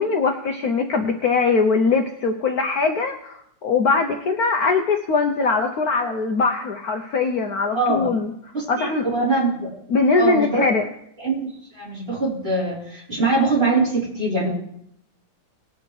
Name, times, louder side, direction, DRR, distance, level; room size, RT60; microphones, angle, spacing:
voice 1, 0.0-8.3 8.7-9.1 9.9-10.8, left 4 dB, 60° left, 4 dB, 1.2 m, -21 dB
voice 2, 7.7-8.1 8.5-9.7 10.2-10.7 11.2-14.5, right 2 dB, 30° right, -6 dB, 4.3 m, -23 dB
20.0 x 7.8 x 3.3 m, 0.73 s
omnidirectional pair, 2.1 m